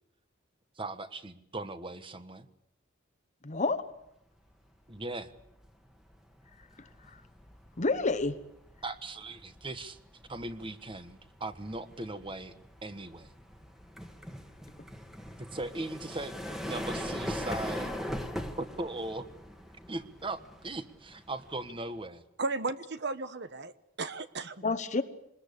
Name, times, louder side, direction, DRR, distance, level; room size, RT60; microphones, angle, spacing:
voice 1, 0.7-2.5 4.9-5.3 8.8-10.0 10.3-12.5 12.8-13.3 15.4-18.0 18.6-19.3 19.9-22.2, right 2 dB, 25° right, 11 dB, 1.4 m, -39 dB
voice 2, 3.4-3.9 6.8-7.2 7.8-8.4 24.6-25.0, left 3 dB, 35° left, 10 dB, 1.1 m, -29 dB
sound 1, 4.6-4.9 5.3-22.1, equal, ahead, 1.8 m, -41 dB
voice 3, 22.4-23.7 24.0-24.6, right 3 dB, 60° right, 13 dB, 1.2 m, -34 dB
25.0 x 20.5 x 8.4 m, 0.78 s
head